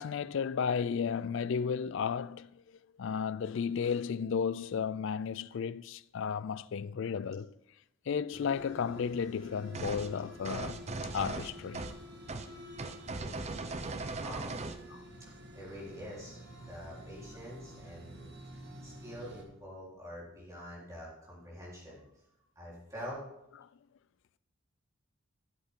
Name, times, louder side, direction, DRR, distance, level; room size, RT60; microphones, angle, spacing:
voice 1, 0.0-2.5 3.0-7.5 8.1-10.8 11.1-11.8 13.2-13.4 14.9-15.0, left 6 dB, 60° left, 0.3 m, -33 dB
sound 1, 8.3-19.4, equal, 50° right, 1.7 m, -49 dB
sound 2, 9.7-10.1 10.4-12.0 12.3-12.5 12.8-14.8, right 3 dB, 30° right, 0.6 m, -38 dB
voice 2, 14.2-14.5 15.3-16.4 16.7-18.4 18.8-22.0 22.6-23.2, equal, 15° right, 3.8 m, -46 dB
14.0 x 8.0 x 3.7 m
head